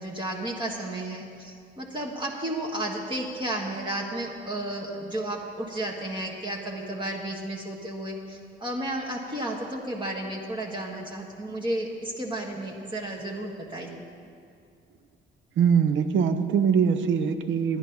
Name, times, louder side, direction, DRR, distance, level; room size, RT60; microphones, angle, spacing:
voice 1, 0.0-14.1, right 1 dB, 25° right, -2 dB, 1.4 m, -33 dB
voice 2, 15.6-17.8, right 7 dB, 75° right, 10 dB, 0.7 m, -22 dB
10.0 x 9.9 x 5.8 m, 2.3 s
cardioid pair, 90°, 20 cm